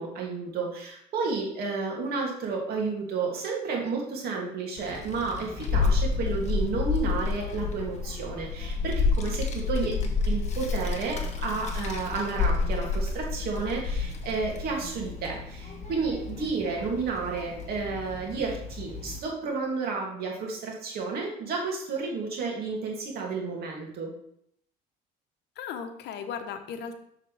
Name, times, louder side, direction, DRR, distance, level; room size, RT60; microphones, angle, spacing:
voice 1, 0.0-9.9 10.2-24.1, right 4 dB, 60° right, -1 dB, 2.7 m, -31 dB
Child speech kid speaking, 4.8-19.2, left 4 dB, 40° left, 1.4 m, -30 dB
voice 2, 9.7-10.1 25.6-27.0, left 7 dB, 70° left, 7 dB, 1.0 m, -37 dB
7.2 x 6.6 x 3.4 m, 0.71 s
cardioid pair, 110°, 18 cm